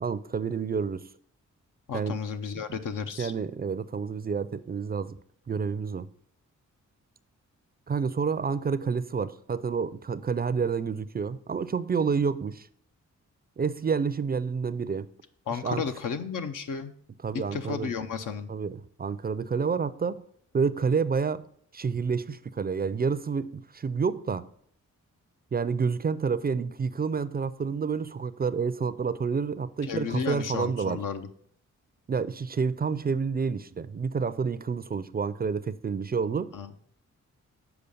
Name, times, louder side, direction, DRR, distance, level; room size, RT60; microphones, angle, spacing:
voice 1, 0.0-1.1 1.9-2.2 3.2-5.2 5.5-6.1 7.9-12.7 13.6-15.1 15.6-15.8 17.2-17.9 18.5-20.2 20.5-21.5 21.7-24.5 25.5-31.0 32.1-36.6, right 5 dB, 30° right, 0.4 m, -29 dB
voice 2, 1.9-3.3 15.5-16.9 17.5-18.5 29.8-31.3 36.5-36.7, left 6 dB, 75° left, 0.8 m, -33 dB
6.9 x 4.8 x 5.3 m
cardioid pair, 65°, 32 cm